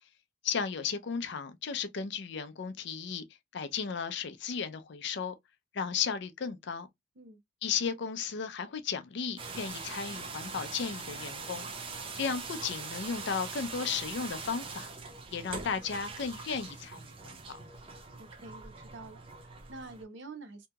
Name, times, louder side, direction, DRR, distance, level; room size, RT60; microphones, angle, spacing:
voice 1, 0.4-3.2 3.5-5.3 5.7-6.9 7.6-11.7 12.1-14.9 15.3-17.6, left 6 dB, 60° left, 0.5 m, -35 dB
sound 1, 9.4-20.0, right 4 dB, 25° right, 0.5 m, -42 dB
voice 2, 18.2-20.7, right 3 dB, 65° right, 0.7 m, -47 dB
2.8 x 2.7 x 2.2 m
head